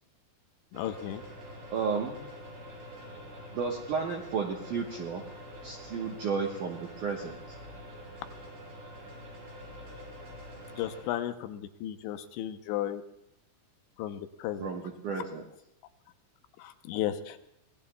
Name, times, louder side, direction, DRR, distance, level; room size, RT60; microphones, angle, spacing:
voice 1, 0.7-1.2 10.7-13.0 14.0-14.7 16.6-17.5, left 12 dB, 85° left, 9 dB, 3.1 m, -34 dB
sound 1, 0.7-11.0, equal, 90° right, 7.7 m, -46 dB
voice 2, 1.7-2.2 3.5-5.2 5.6-7.4 14.6-15.5, right 5 dB, 65° right, -1 dB, 2.1 m, -33 dB
24.0 x 18.0 x 2.3 m, 0.81 s
omnidirectional pair, 5.1 m